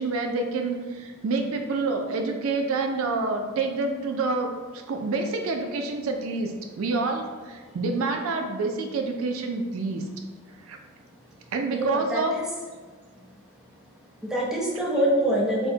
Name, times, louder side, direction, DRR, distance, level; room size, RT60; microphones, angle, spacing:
voice 1, 0.0-10.0 10.6-10.8 11.5-12.3, right 3 dB, 70° right, 4 dB, 0.4 m, -28 dB
voice 2, 11.7-12.4 14.2-15.7, equal, 5° right, -4 dB, 0.5 m, -25 dB
4.5 x 2.1 x 2.6 m, 1.4 s
head